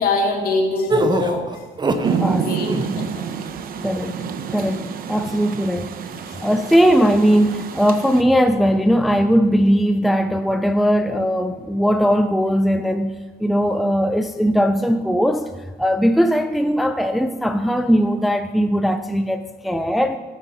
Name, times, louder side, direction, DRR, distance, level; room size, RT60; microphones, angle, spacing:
voice 1, 0.0-1.4 2.0-2.7 3.0-3.3, left 3 dB, 60° left, 1 dB, 2.8 m, -23 dB
sound 1, 0.9-2.2 2.6-3.0, right 2 dB, 25° right, 1.0 m, -22 dB
Rain, 2.0-8.2, right 7 dB, 60° right, 1.0 m, -28 dB
voice 2, 3.8-4.2 4.5-5.9 6.4-13.1 13.4-15.5 15.8-20.2, equal, ahead, 7 dB, 0.5 m, -19 dB
15.5 x 10.0 x 4.2 m, 1.3 s
cardioid pair, 110°, 17 cm